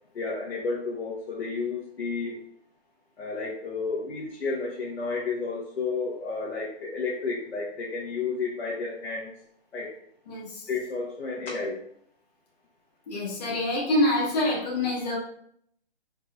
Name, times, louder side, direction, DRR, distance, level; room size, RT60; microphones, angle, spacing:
voice 1, 0.1-2.4 3.2-9.3 9.7-9.9 10.7-11.8, left 4 dB, 85° left, -4 dB, 1.1 m, -31 dB
voice 2, 10.3-10.7 13.1-15.2, left 1 dB, 40° left, -4 dB, 1.2 m, -26 dB
4.6 x 3.2 x 2.3 m, 0.66 s
hypercardioid pair, 170°, 32 cm